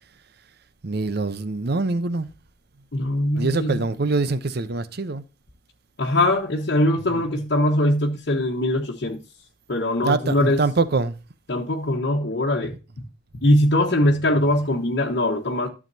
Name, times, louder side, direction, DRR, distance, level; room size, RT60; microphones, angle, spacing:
voice 1, 0.8-2.3 3.4-5.2 7.1-7.2 10.0-11.2, right 3 dB, 55° right, 0.8 m, -24 dB
voice 2, 2.9-3.8 6.0-9.2 9.7-10.6 11.5-12.7 13.3-15.7, left 1 dB, 60° left, 1.2 m, -21 dB
12.0 x 7.3 x 2.7 m
head